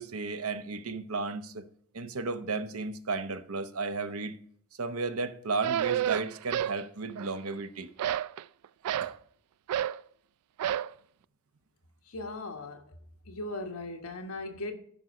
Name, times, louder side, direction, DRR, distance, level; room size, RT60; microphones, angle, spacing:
voice 1, 0.0-1.6 1.9-4.4 4.8-7.9 9.0-9.1, right 4 dB, 75° right, 0.8 m, -34 dB
sound 1, 5.6-6.8 7.1-7.6 8.0-9.2 9.7-10.0 10.6-10.9, right 10 dB, 90° right, 0.3 m, -30 dB
voice 2, 12.1-12.8 13.3-14.7, left 2 dB, 75° left, 1.4 m, -38 dB
12.0 x 5.3 x 4.9 m
head